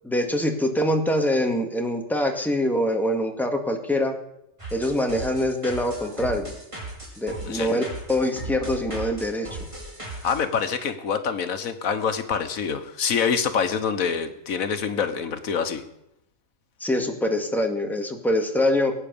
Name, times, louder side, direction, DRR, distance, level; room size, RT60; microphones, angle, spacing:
voice 1, 0.0-4.1 4.7-6.5 7.2-7.8 8.1-9.6 16.8-18.9, left 1 dB, ahead, 3 dB, 1.8 m, -24 dB
sound 1, 4.6-10.4, right 2 dB, 25° right, 4.4 m, -37 dB
voice 2, 7.5-7.8 10.2-15.8, left 6 dB, 90° left, 9 dB, 1.6 m, -26 dB
21.0 x 8.8 x 7.0 m, 0.83 s
omnidirectional pair, 1.4 m